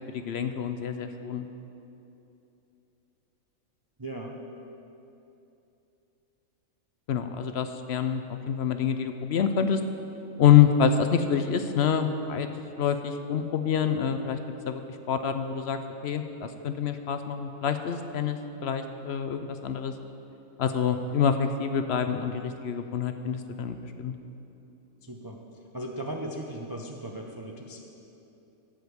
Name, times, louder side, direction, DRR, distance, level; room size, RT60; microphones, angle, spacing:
voice 1, 0.1-1.5 7.1-8.2 8.5-9.8 10.4-12.5 12.8-14.4 14.7-14.8 15.1-19.9 20.6-24.1, left 8 dB, 65° left, 8 dB, 0.7 m, -26 dB
voice 2, 4.0-4.4 25.0-25.4 25.7-27.8, right 1 dB, 35° right, 1 dB, 0.3 m, -37 dB
14.0 x 5.1 x 8.0 m, 2.9 s
omnidirectional pair, 1.5 m